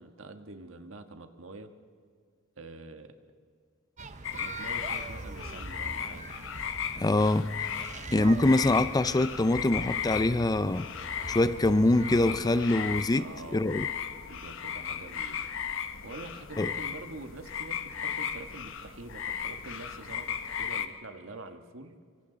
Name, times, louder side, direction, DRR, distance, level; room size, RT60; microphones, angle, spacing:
voice 1, 0.0-1.7 2.6-3.1 4.3-6.3 13.1-13.7 14.3-15.5 16.0-21.9, right 2 dB, 70° right, 1.5 m, -45 dB
sound 1, 4.0-13.0, right 2 dB, 35° right, 1.0 m, -43 dB
sound 2, 4.2-20.9, left 8 dB, 65° left, 1.1 m, -36 dB
voice 2, 7.0-7.7 8.1-10.9 11.3-13.9 16.6-16.7, left 2 dB, 20° left, 0.5 m, -24 dB
27.5 x 24.5 x 4.0 m
head